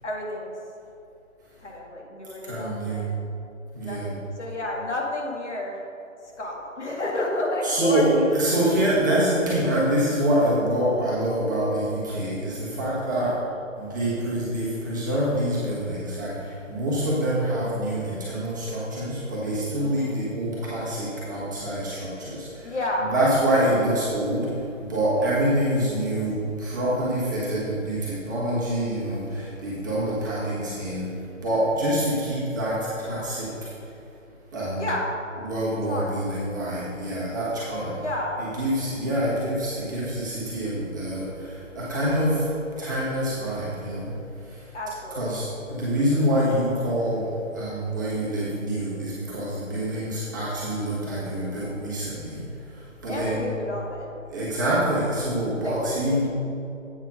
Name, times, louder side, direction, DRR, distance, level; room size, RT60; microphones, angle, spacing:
voice 1, 0.0-0.5 1.6-3.1 3.8-5.8 6.4-8.4 8.7-8.8 13.2-13.4 19.8-20.2 22.6-23.1 25.2-25.4 34.8-35.1 35.9-36.2 37.9-38.5 44.7-45.4 53.1-54.1 55.6-56.0, left 1 dB, 60° left, -2 dB, 1.9 m, -31 dB
voice 2, 2.4-3.1 3.7-4.1 7.6-13.3 13.8-31.1 31.4-33.7 34.5-34.9 35.4-38.0 38.4-42.5 42.8-44.1 44.4-44.6 45.1-52.4 52.7-53.5 54.3-56.3, right 1 dB, 15° right, -9 dB, 1.1 m, -26 dB
8.3 x 6.1 x 5.3 m, 2.7 s
figure-of-eight pair, 150°, 40 cm